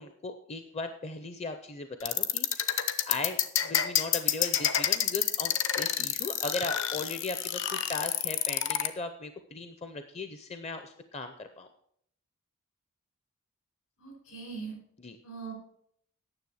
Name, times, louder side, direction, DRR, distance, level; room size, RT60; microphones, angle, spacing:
voice 1, 0.0-11.7 15.0-15.2, left 3 dB, 30° left, 8 dB, 0.5 m, -38 dB
sound 1, 2.0-8.9, left 10 dB, 55° left, 0.8 m, -28 dB
voice 2, 14.0-14.7 15.2-15.5, right 5 dB, 75° left, 1 dB, 4.8 m, -40 dB
9.8 x 7.0 x 6.4 m, 0.68 s
head